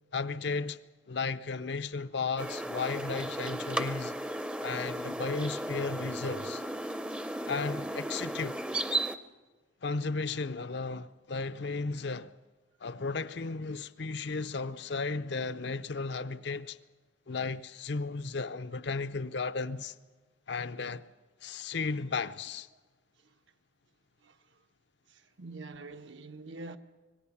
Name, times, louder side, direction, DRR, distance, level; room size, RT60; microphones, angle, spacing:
voice 1, 0.1-0.8 1.1-4.2 4.6-6.6 7.5-8.6 9.8-12.3 12.8-16.8 17.3-19.9 20.5-21.1 21.4-22.7, left 4 dB, 65° left, 0.6 m, -34 dB
sound 1, 2.4-9.2, right 1 dB, 5° right, 0.6 m, -35 dB
voice 2, 24.2-24.6 25.1-26.8, right 3 dB, 80° right, 1.1 m, -46 dB
25.0 x 18.5 x 7.2 m
head